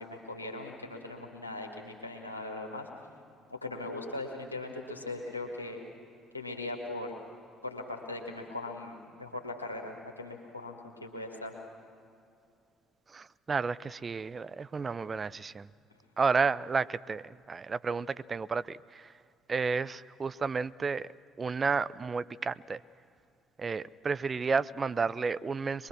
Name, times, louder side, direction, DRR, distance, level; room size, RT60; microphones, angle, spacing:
voice 1, 0.0-2.9 3.5-5.8 6.3-7.2 7.6-11.5, left 2 dB, 85° left, 1 dB, 1.9 m, -39 dB
voice 2, 13.1-15.7 16.2-19.1 19.5-21.1 21.4-22.8 23.6-25.9, right 5 dB, 30° right, 17 dB, 0.4 m, -31 dB
24.0 x 21.5 x 6.2 m, 2.4 s
figure-of-eight pair, 50°, 0 cm